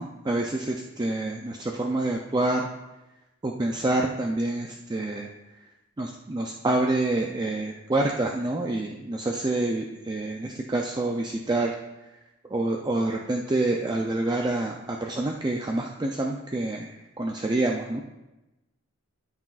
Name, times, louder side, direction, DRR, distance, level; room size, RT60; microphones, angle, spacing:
voice 1, 0.0-2.7 3.4-5.3 6.0-11.7 12.5-18.0, right 2 dB, 20° right, 1 dB, 0.4 m, -27 dB
13.0 x 6.0 x 2.5 m, 0.99 s
head